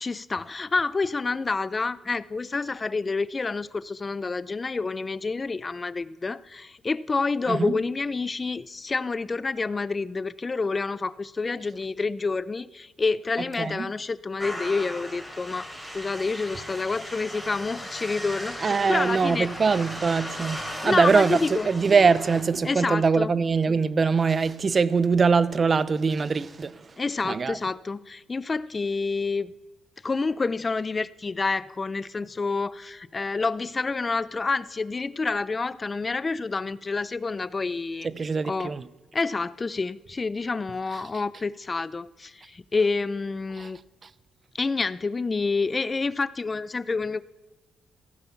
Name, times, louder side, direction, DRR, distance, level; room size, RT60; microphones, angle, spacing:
voice 1, 0.0-19.5 20.8-21.7 22.6-23.3 27.0-29.5 30.0-38.1 38.5-38.7 39.1-43.8 44.6-47.2, left 4 dB, 30° left, 0.5 m, -28 dB
voice 2, 13.6-13.9 18.6-26.9 27.2-27.6 38.0-38.9 40.9-41.0 43.6-43.7, right 5 dB, 35° right, 0.6 m, -23 dB
sound 1, 14.4-22.4, equal, 10° right, 3.8 m, -37 dB
15.0 x 14.5 x 5.8 m
cardioid pair, 90°, 0 cm